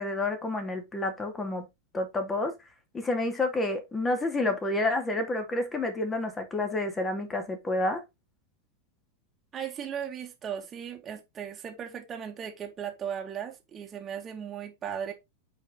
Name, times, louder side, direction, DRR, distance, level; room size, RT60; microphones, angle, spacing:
voice 1, 0.0-1.6 1.9-2.5 2.9-8.0, left 2 dB, 15° left, 2.4 m, -29 dB
voice 2, 9.5-15.1, right 8 dB, 25° right, 2.0 m, -37 dB
8.6 x 4.9 x 3.8 m
figure-of-eight pair, 90°, 0 cm